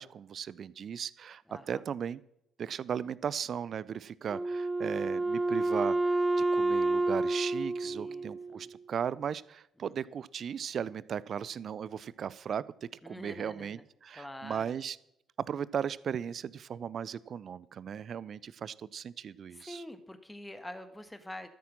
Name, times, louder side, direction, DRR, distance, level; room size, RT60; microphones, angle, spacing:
voice 1, 0.0-1.4 1.7-2.2 2.6-15.0 15.5-19.8, right 8 dB, 50° right, 20 dB, 0.5 m, -37 dB
voice 2, 1.5-1.8 7.8-8.3 8.5-8.6 9.8-10.1 13.0-13.8 14.1-14.8 19.5-21.5, left 1 dB, 10° left, 10 dB, 1.5 m, -46 dB
Wind instrument woodwind instrument, 4.3-8.8, right 2 dB, 15° right, 0.9 m, -29 dB
13.0 x 8.5 x 6.1 m, 0.78 s
hypercardioid pair, 45°, 0 cm